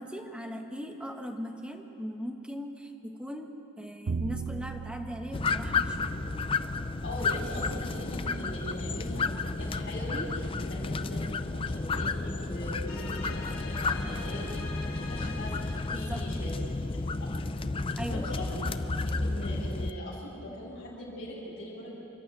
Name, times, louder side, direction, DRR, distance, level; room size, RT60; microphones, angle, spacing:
voice 1, 0.0-3.5 3.8-6.1 14.0-14.2 15.2-15.5 15.9-16.5 18.0-18.3, equal, 5° right, 3 dB, 1.3 m, -39 dB
Bowed string instrument, 4.1-10.2, right 5 dB, 60° right, 0.5 m, -41 dB
sound 1, 5.3-19.9, left 3 dB, 25° left, 0.5 m, -32 dB
voice 2, 7.0-14.4 15.1-16.5 17.2-17.4 17.8-18.5 19.2-22.1, left 1 dB, 55° left, -8 dB, 5.9 m, -41 dB
sound 2, 12.9-16.4, left 4 dB, 70° left, 2.7 m, -44 dB
28.0 x 12.0 x 9.2 m, 2.9 s
head